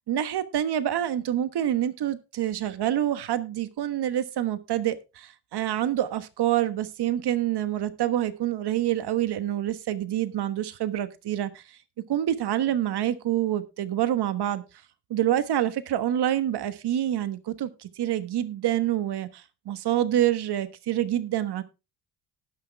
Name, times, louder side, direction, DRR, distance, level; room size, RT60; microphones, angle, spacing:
voice 1, 0.1-11.6 12.1-14.6 15.1-21.6, right 12 dB, 60° right, 1.4 m, -27 dB
18.5 x 6.3 x 3.4 m
supercardioid pair, 60°, 44 cm